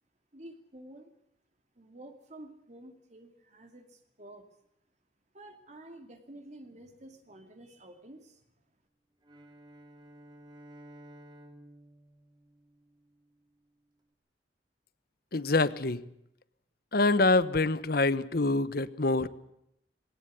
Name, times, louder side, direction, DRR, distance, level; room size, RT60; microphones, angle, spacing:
voice 1, 0.3-1.1 1.8-4.5 5.3-8.4, right 1 dB, 40° right, 6 dB, 2.6 m, -50 dB
Bowed string instrument, 9.2-13.4, right 1 dB, 25° right, 2.9 m, -53 dB
voice 2, 15.3-16.0 16.9-19.3, left 3 dB, 55° left, 16 dB, 1.1 m, -25 dB
21.5 x 18.0 x 8.3 m, 0.77 s
head